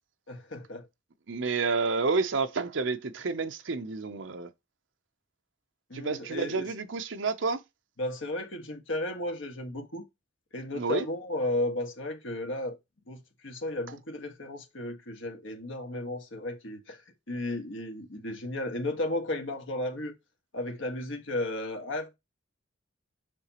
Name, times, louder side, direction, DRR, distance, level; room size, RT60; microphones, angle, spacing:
voice 1, 0.3-0.9 5.9-6.7 8.0-10.0 10.5-12.8 13.1-17.0 17.3-20.2 20.5-22.1, left 1 dB, 70° left, 1.7 m, -34 dB
voice 2, 1.3-4.5 5.9-7.6 10.7-11.0, right 4 dB, 65° right, 0.7 m, -29 dB
6.9 x 4.8 x 3.0 m
head